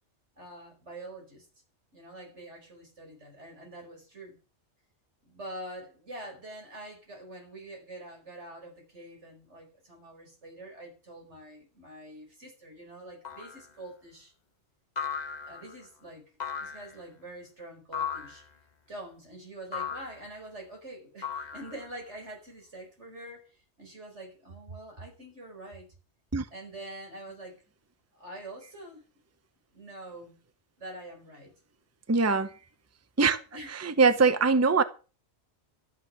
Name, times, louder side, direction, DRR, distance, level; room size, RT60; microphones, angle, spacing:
voice 1, 0.4-1.5 1.9-4.4 5.2-14.3 15.4-16.3 16.5-18.5 18.9-25.9 26.5-27.6 28.1-29.0 29.7-30.4 30.8-31.5 33.5-33.8, right 1 dB, 85° right, 5.2 m, -45 dB
sound 1, 13.3-13.7 15.0-15.7 16.4-17.0 17.9-18.5 19.7-20.2 21.2-22.0, left 6 dB, 40° left, 1.5 m, -36 dB
voice 2, 32.1-32.5 33.2-33.4 33.7-34.8, right 4 dB, 15° right, 0.8 m, -22 dB
12.5 x 9.5 x 6.1 m
omnidirectional pair, 1.2 m